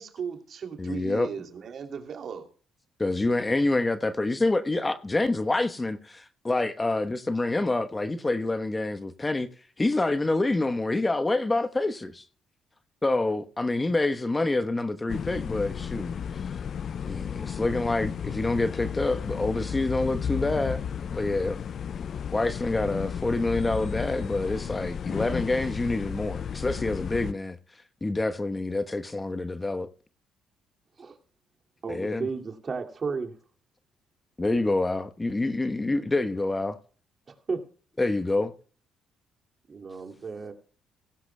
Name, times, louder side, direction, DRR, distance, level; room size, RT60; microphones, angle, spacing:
voice 1, 0.0-2.5, right 7 dB, 55° right, 2.8 m, -37 dB
voice 2, 0.8-1.3 3.0-9.5 9.8-12.2 13.0-16.5 17.1-21.6 22.3-27.6 28.0-29.9 31.9-32.3 34.4-36.8 38.0-38.5, left 2 dB, 20° left, 1.1 m, -27 dB
sound 1, 15.1-27.3, left 7 dB, 55° left, 0.5 m, -33 dB
voice 3, 31.8-33.4 37.5-37.6 39.7-40.5, right 4 dB, 40° right, 2.4 m, -33 dB
17.5 x 16.0 x 2.2 m
supercardioid pair, 75°, 0 cm